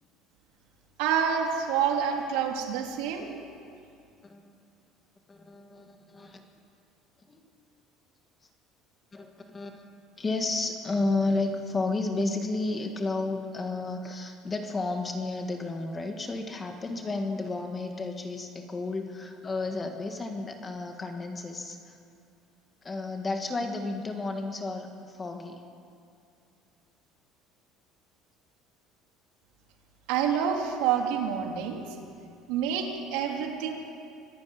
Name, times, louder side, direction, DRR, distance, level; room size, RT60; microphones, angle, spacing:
voice 1, 1.0-3.3 30.1-31.8 32.5-33.8, right 7 dB, 85° right, 2 dB, 3.2 m, -27 dB
voice 2, 4.2-4.5 5.3-6.4 7.3-7.4 9.1-9.8 10.2-22.0 22.8-25.6, left 3 dB, 15° left, 5 dB, 1.7 m, -32 dB
24.5 x 13.0 x 9.6 m, 2.5 s
cardioid pair, 165°, 0 cm